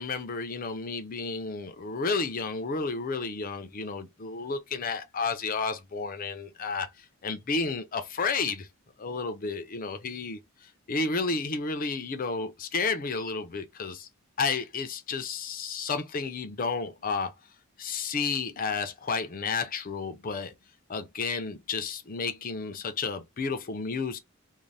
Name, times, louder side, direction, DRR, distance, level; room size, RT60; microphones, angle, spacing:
voice 1, 0.0-8.7 9.0-14.1 14.4-17.3 17.8-20.5 20.9-24.2, left 4 dB, 40° left, 0.5 m, -32 dB
2.6 x 2.1 x 3.2 m
head